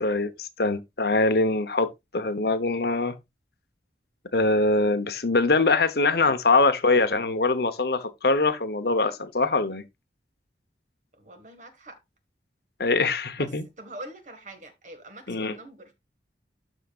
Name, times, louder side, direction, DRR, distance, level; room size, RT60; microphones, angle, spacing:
voice 1, 0.0-3.2 4.3-9.8 12.8-13.6 15.3-15.6, left 3 dB, 60° left, 0.9 m, -23 dB
voice 2, 11.1-12.0 13.4-13.5 13.8-15.9, right 2 dB, 45° right, 1.8 m, -44 dB
13.0 x 5.0 x 2.5 m
head